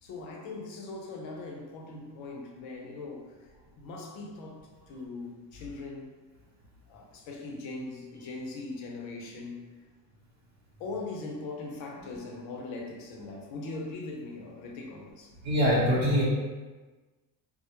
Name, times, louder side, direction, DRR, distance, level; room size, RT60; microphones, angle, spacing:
voice 1, 0.0-6.2 6.9-9.6 10.8-15.3, left 3 dB, 70° left, 0 dB, 0.7 m, -40 dB
voice 2, 15.4-16.2, equal, 50° right, -7 dB, 0.8 m, -23 dB
2.1 x 2.1 x 2.9 m, 1.3 s
supercardioid pair, 85°, 48 cm